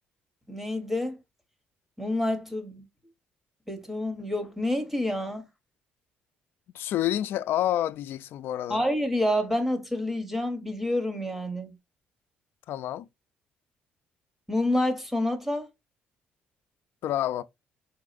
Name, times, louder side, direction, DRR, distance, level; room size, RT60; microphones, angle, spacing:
voice 1, 0.5-1.2 2.0-2.8 3.7-5.4 8.7-11.7 14.5-15.7, left 1 dB, 5° right, 0.9 m, -28 dB
voice 2, 6.7-8.8 12.7-13.1 17.0-17.4, left 12 dB, 70° left, 0.3 m, -28 dB
4.7 x 4.1 x 2.5 m
cardioid pair, 130°, 4 cm